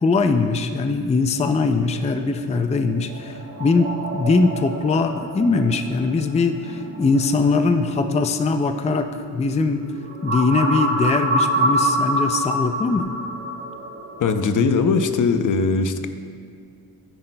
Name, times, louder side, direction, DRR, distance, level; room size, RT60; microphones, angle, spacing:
voice 1, 0.0-9.9 10.2-13.1, left 4 dB, 20° left, 7 dB, 0.4 m, -21 dB
sound 1, 1.4-14.4, right 1 dB, 35° right, 1.2 m, -27 dB
voice 2, 14.2-16.1, left 4 dB, 55° left, 8 dB, 0.6 m, -20 dB
13.0 x 10.0 x 2.2 m, 2.2 s
cardioid pair, 100°, 36 cm